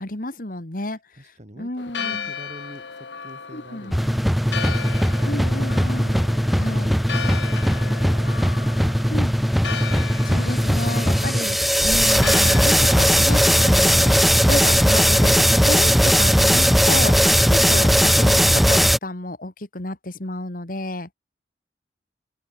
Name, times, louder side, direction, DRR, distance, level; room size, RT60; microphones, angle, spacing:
voice 1, 0.0-1.2 1.6-2.3 3.5-4.0 5.3-6.2 6.6-6.9 9.1-9.3 10.1-15.9 16.2-21.1, left 2 dB, 50° left, 2.2 m, -31 dB
voice 2, 1.1-4.7, equal, 40° right, 4.5 m, -46 dB
Church bell, 1.8-15.9, left 6 dB, 90° left, 1.5 m, -36 dB
sound 1, 3.9-19.0, equal, ahead, 0.7 m, -18 dB
open air
head